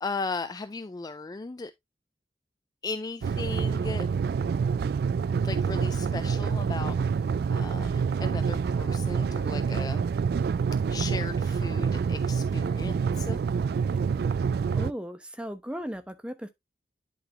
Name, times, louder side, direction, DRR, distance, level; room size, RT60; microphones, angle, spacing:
voice 1, 0.0-1.7 2.8-4.1 5.4-7.0 7.5-10.1 10.9-13.4, left 3 dB, 20° left, 0.3 m, -36 dB
sound 1, 3.2-14.9, right 6 dB, 60° right, 0.3 m, -27 dB
voice 2, 14.7-16.5, equal, 5° right, 0.8 m, -36 dB
11.0 x 4.0 x 2.8 m
head